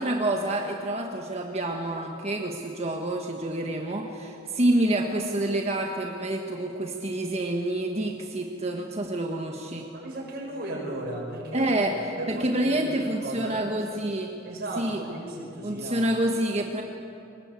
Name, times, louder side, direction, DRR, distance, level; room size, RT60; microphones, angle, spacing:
voice 1, 0.0-9.9 11.5-12.0 12.3-14.3 14.8-15.0 15.6-16.8, right 1 dB, 30° right, 2 dB, 1.4 m, -27 dB
voice 2, 9.9-11.8 12.2-13.7 14.4-16.1, right 1 dB, 50° right, -1 dB, 6.5 m, -36 dB
25.0 x 20.5 x 8.3 m, 2.9 s
head